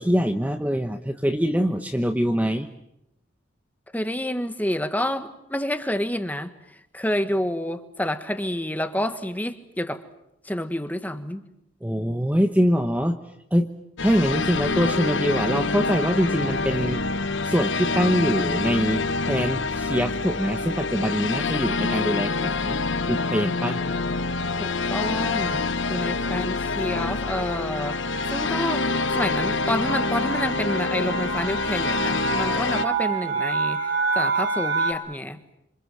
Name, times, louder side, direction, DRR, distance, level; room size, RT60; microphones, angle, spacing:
voice 1, 0.0-2.7 11.8-13.2 13.5-13.7 14.0-22.8 23.1-23.8, equal, 10° right, 1.1 m, -24 dB
voice 2, 3.9-6.5 6.9-10.0 10.4-11.4 24.6-25.6 25.9-28.0 28.3-28.9 29.1-33.8 34.1-35.4, left 1 dB, 10° left, 1.5 m, -28 dB
sound 1, 14.0-32.9, left 3 dB, 75° left, 1.0 m, -26 dB
sound 2, 16.8-17.3 18.0-18.4 18.7-18.9 19.2-34.9, right 4 dB, 70° right, 4.7 m, -32 dB
27.5 x 26.5 x 7.7 m
head